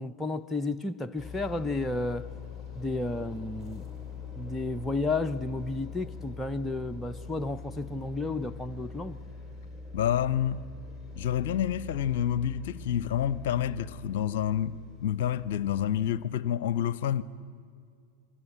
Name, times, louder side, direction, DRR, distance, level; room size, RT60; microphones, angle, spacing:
voice 1, 0.0-2.3 2.7-3.8 4.4-9.2, left 2 dB, 10° left, 0.6 m, -32 dB
sound 1, 1.2-16.2, left 4 dB, 5° right, 5.1 m, -43 dB
voice 2, 9.9-10.6 11.2-17.2, left 10 dB, 55° left, 0.7 m, -28 dB
26.5 x 23.5 x 8.7 m
figure-of-eight pair, 90°, 0 cm